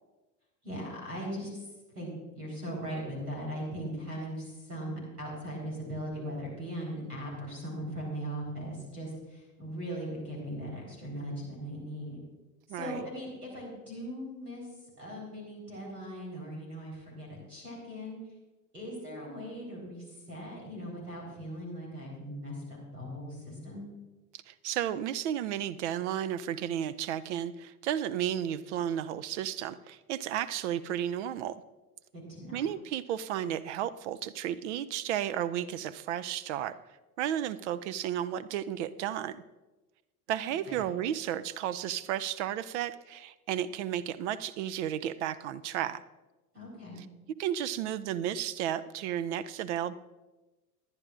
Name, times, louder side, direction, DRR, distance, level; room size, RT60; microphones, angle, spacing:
voice 1, 0.6-1.7 1.9-12.2 12.7-14.7 15.0-18.2 18.7-23.9 32.1-32.6 40.5-40.8 46.5-47.0, equal, 85° right, -2 dB, 4.3 m, -39 dB
voice 2, 12.7-13.0 24.5-31.6 32.5-36.8 37.2-39.4 40.3-46.0 47.4-49.9, right 10 dB, 50° right, 18 dB, 0.6 m, -33 dB
21.0 x 9.7 x 2.5 m, 1.1 s
figure-of-eight pair, 75°, 46 cm